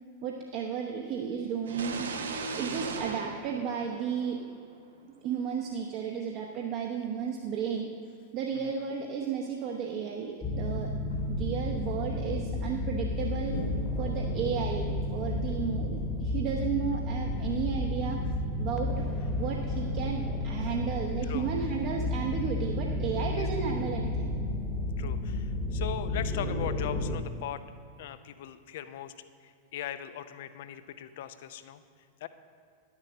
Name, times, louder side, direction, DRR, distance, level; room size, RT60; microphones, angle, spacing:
voice 1, 0.2-2.1 2.5-4.4 5.2-7.9 8.3-10.9 11.3-13.6 14.0-18.2 18.6-19.0 19.4-24.3, right 7 dB, 40° right, 0 dB, 1.0 m, -33 dB
sound 1, 1.7-4.5, right 4 dB, 65° right, 0.9 m, -37 dB
sound 2, 10.4-27.2, left 1 dB, 20° left, 1.2 m, -32 dB
sound 3, 11.1-11.7 13.5-14.3, equal, 80° left, 1.7 m, -39 dB
voice 2, 25.0-27.6 28.0-29.1 29.4-31.8 32.2-32.3, left 11 dB, 55° left, 12 dB, 0.6 m, -39 dB
11.0 x 7.3 x 6.7 m, 2.4 s
figure-of-eight pair, 90°, 0 cm